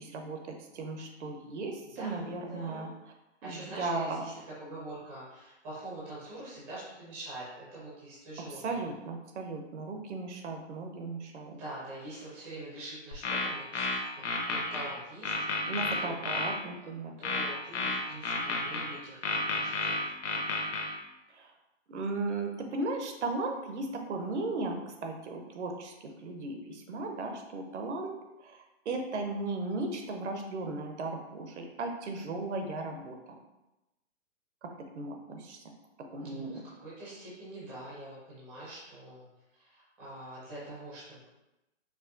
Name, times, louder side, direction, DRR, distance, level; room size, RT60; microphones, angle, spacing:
voice 1, 0.0-2.9 3.4-4.2 8.6-11.6 15.7-17.1 21.3-21.5 21.9-28.1 28.4-33.4 34.6-35.6 36.1-36.6, right 3 dB, 65° right, 3 dB, 0.7 m, -36 dB
voice 2, 1.9-2.9 3.4-4.3 4.6-8.9 11.5-16.2 17.2-20.0 36.2-39.3 39.5-41.3, right 1 dB, 10° right, -9 dB, 0.4 m, -45 dB
sound 1, 13.1-14.9 15.2-16.5 17.2-18.9 19.2-20.9, left 3 dB, 70° left, 0.9 m, -31 dB
4.7 x 2.3 x 2.5 m, 0.96 s
hypercardioid pair, 150°, 37 cm